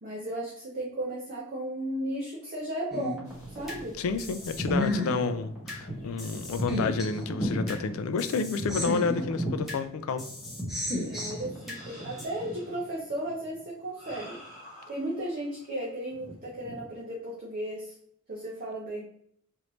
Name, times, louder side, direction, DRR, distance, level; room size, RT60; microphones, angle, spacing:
voice 1, 0.0-3.2 3.5-4.0 11.0-14.4 14.9-17.9 18.3-19.0, right 1 dB, 40° right, -5 dB, 0.6 m, -35 dB
sound 1, 2.9-3.8 4.2-5.8 6.2-7.8 8.2-9.8 10.2-11.8 12.2-12.3, left 1 dB, ahead, 0.9 m, -33 dB
sound 2, 3.2-15.7 16.1-16.9, equal, 30° left, 1.2 m, -40 dB
voice 2, 4.0-10.3, left 4 dB, 65° left, 11 dB, 0.3 m, -30 dB
3.1 x 2.6 x 3.0 m, 0.65 s
head